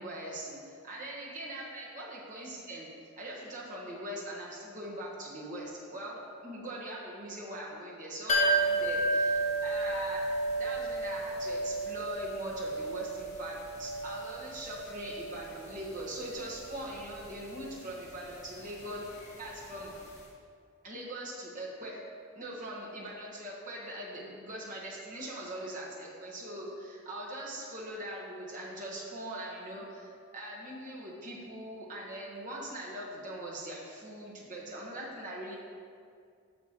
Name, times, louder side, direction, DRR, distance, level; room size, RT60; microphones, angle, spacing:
voice 1, 0.0-2.9 3.2-10.2 10.5-19.0 19.4-19.9 20.8-22.0 22.3-35.6, right 1 dB, 35° right, -4 dB, 1.4 m, -41 dB
sound 1, 8.3-19.9 20.2-20.3, right 2 dB, 35° left, 1.3 m, -33 dB
9.6 x 6.0 x 3.1 m, 2.2 s
head